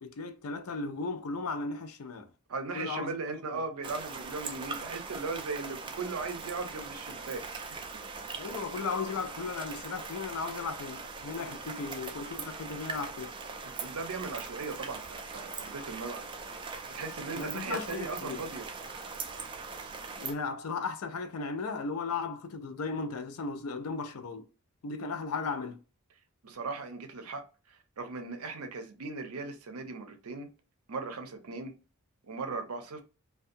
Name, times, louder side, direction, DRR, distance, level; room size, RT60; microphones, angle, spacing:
voice 1, 0.0-2.3 2.7-3.2 3.5-3.6 8.4-13.3 17.3-18.4 20.2-24.5 24.8-25.8, left 4 dB, 80° left, 0.5 m, -36 dB
voice 2, 2.5-7.4 13.8-16.2 16.9-18.7 26.4-30.5 30.9-31.7 32.3-33.0, right 3 dB, 85° right, 0.6 m, -38 dB
sound 1, 3.8-20.3, right 4 dB, 20° right, 0.3 m, -41 dB
2.6 x 2.3 x 2.5 m
head